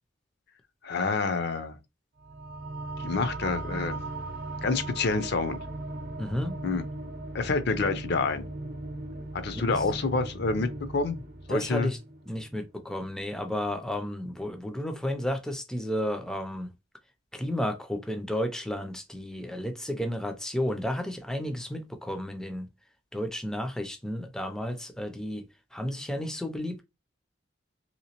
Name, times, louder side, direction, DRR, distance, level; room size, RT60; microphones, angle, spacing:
voice 1, 0.8-1.8 3.0-4.0 4.6-5.6 6.6-6.8 7.3-8.4 9.3-11.2 11.5-11.9, left 3 dB, 60° left, 0.5 m, -28 dB
sound 1, 2.2-13.1, right 2 dB, 50° right, 0.7 m, -38 dB
voice 2, 6.2-6.6 9.5-9.8 11.5-12.0 12.3-16.7 17.3-22.7 23.1-25.4 25.7-26.8, left 1 dB, 5° left, 0.4 m, -32 dB
3.3 x 2.9 x 2.8 m
head